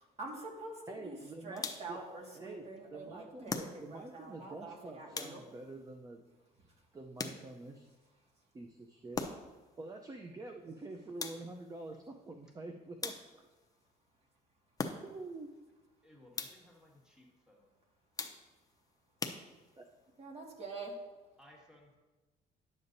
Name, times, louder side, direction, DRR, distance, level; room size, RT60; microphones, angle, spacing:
voice 1, 0.2-1.2 1.4-5.4 20.2-21.0, right 3 dB, 40° right, -1 dB, 1.9 m, -46 dB
voice 2, 0.9-2.0 2.3-6.2 6.9-7.9 8.5-9.3 9.8-13.4 15.0-15.5 19.8-19.9, right 2 dB, 20° right, 4 dB, 0.6 m, -47 dB
sound 1, 1.6-2.1 3.5-4.1 5.1-5.7 7.2-7.8 9.1-9.7 11.2-11.7 13.0-13.6 14.8-15.3 16.3-16.8 18.2-18.7 19.2-19.9, left 4 dB, 20° left, 0.6 m, -41 dB
voice 3, 16.0-17.7 21.4-22.0, left 1 dB, 5° right, -2 dB, 1.8 m, -60 dB
10.5 x 7.0 x 2.7 m, 1.2 s
cardioid pair, 110°, 17 cm